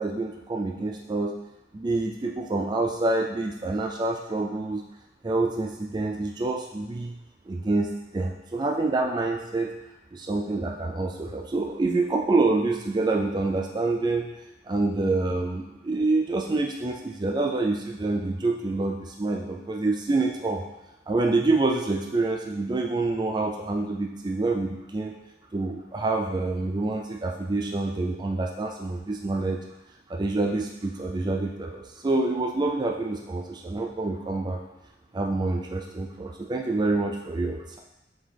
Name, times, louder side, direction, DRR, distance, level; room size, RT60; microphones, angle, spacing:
voice 1, 0.0-1.3 1.7-4.8 5.2-7.1 7.5-9.7 10.1-14.3 14.7-20.6 21.1-25.1 25.5-29.6 30.1-34.6 35.1-37.8, right 2 dB, 25° right, 1 dB, 0.4 m, -27 dB
7.3 x 4.3 x 3.4 m, 0.96 s
head